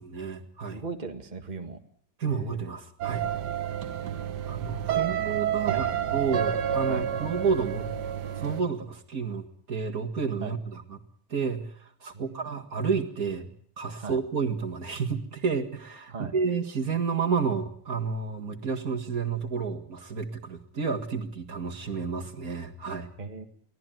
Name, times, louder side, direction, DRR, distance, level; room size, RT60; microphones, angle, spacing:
voice 1, 0.1-0.8 2.2-3.2 4.5-5.9 6.1-7.9 8.4-11.0 11.3-13.5 13.8-23.1, right 5 dB, 60° right, 4 dB, 2.4 m, -30 dB
voice 2, 0.7-1.8 2.3-2.6 4.9-5.1 5.7-6.0 6.9-7.1 10.4-10.5 12.1-12.6 14.0-14.2 16.1-16.3 23.2-23.4, right 4 dB, 25° right, 5 dB, 1.8 m, -38 dB
sound 1, 3.0-8.6, right 9 dB, 80° right, 1.8 m, -29 dB
24.0 x 17.0 x 9.2 m, 0.62 s
omnidirectional pair, 1.8 m